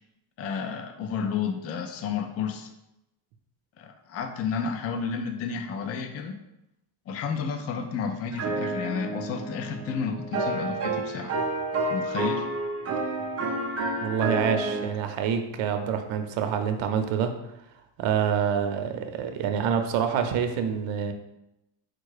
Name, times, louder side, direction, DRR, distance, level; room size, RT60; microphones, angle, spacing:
voice 1, 0.4-2.7 3.8-6.4 7.1-11.3 11.9-12.5, left 6 dB, 35° left, 6 dB, 0.4 m, -31 dB
sound 1, 8.3-14.9, right 2 dB, 30° right, 0.6 m, -30 dB
voice 2, 14.0-17.3 18.0-21.1, right 7 dB, 65° right, 6 dB, 0.7 m, -26 dB
4.5 x 2.2 x 4.8 m, 0.89 s
cardioid pair, 125°, 49 cm